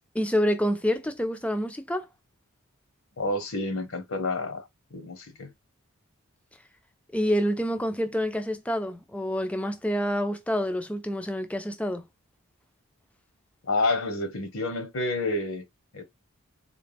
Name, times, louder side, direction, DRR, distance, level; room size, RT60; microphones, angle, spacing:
voice 1, 0.1-2.1 7.1-12.1, equal, 5° left, 0.4 m, -27 dB
voice 2, 3.2-5.5 13.7-15.6 15.9-16.0, left 2 dB, 70° left, 0.9 m, -29 dB
4.0 x 2.1 x 3.4 m
head